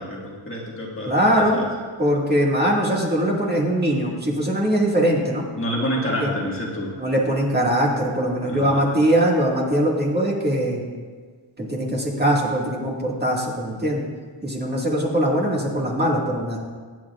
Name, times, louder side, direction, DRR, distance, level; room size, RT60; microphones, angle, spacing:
voice 1, 0.0-1.7 5.5-6.9 8.4-9.1, equal, 25° left, -3 dB, 1.7 m, -28 dB
voice 2, 1.1-1.6 2.0-5.4 6.2-6.3 7.0-10.8 11.6-14.0 14.4-16.6, equal, 20° right, -3 dB, 1.9 m, -21 dB
24.0 x 9.2 x 2.4 m, 1.5 s
wide cardioid pair, 155°, 50 cm